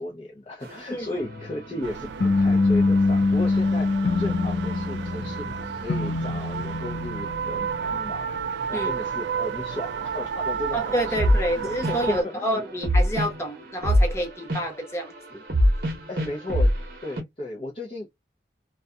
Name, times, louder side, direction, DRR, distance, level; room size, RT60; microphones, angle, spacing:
voice 1, 0.0-8.4 8.7-11.2 11.5-12.6 16.1-16.7 17.0-18.1, left 1 dB, 30° left, 0.5 m, -35 dB
sound 1, 0.6-17.2, equal, 55° right, 0.8 m, -29 dB
voice 2, 0.9-1.2 8.7-8.9 10.7-15.4, right 1 dB, 15° left, 0.9 m, -28 dB
sound 2, 1.2-8.5, left 3 dB, 85° left, 0.5 m, -25 dB
sound 3, 1.8-12.2, right 7 dB, 85° right, 0.3 m, -32 dB
2.6 x 2.3 x 2.2 m
head